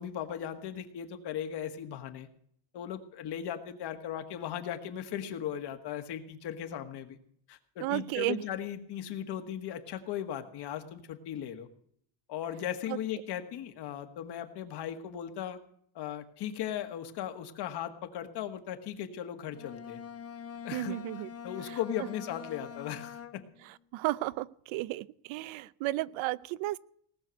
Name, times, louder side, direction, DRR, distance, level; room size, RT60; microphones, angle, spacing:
voice 1, 0.0-2.3 2.7-7.2 7.5-11.7 12.3-15.6 16.0-20.0 20.6-21.0 21.4-23.4, left 10 dB, 55° left, 8 dB, 1.8 m, -37 dB
voice 2, 7.8-8.4 12.9-13.0 20.7-21.3 21.7-21.8 23.9-26.8, right 18 dB, 80° right, 19 dB, 0.7 m, -33 dB
Bowed string instrument, 19.5-23.7, left 8 dB, 30° left, 0.9 m, -44 dB
18.5 x 6.8 x 9.1 m, 0.65 s
cardioid pair, 160°, 47 cm